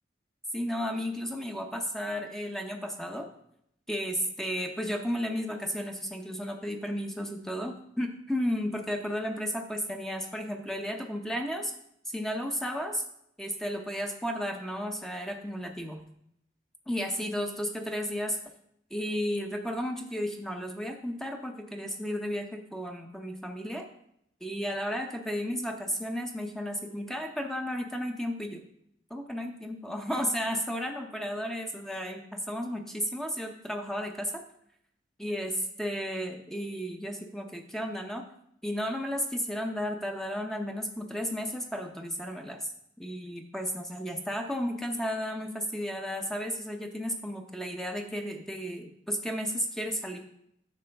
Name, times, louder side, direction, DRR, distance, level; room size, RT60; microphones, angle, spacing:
voice 1, 0.5-3.3 3.9-11.7 12.1-13.0 13.4-16.0 16.9-18.4 18.9-23.8 24.4-28.6 29.1-34.4 35.2-35.5 35.8-38.3 38.6-42.7 43.0-50.2, equal, ahead, 3 dB, 0.7 m, -33 dB
9.3 x 6.0 x 3.4 m, 0.73 s
head